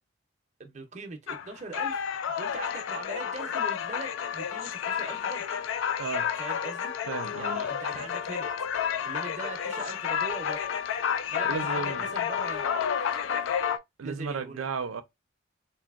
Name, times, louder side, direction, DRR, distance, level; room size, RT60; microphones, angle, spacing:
voice 1, 0.6-5.4 6.4-7.0 7.4-8.5 9.0-10.6 11.3-12.7 14.0-14.7, right 3 dB, 35° right, 0.6 m, -41 dB
sound 1, 1.3-13.8, left 8 dB, 75° left, 0.3 m, -30 dB
voice 2, 7.1-7.6 11.5-12.2 14.0-15.0, right 5 dB, 90° right, 0.5 m, -34 dB
3.3 x 2.6 x 2.4 m
head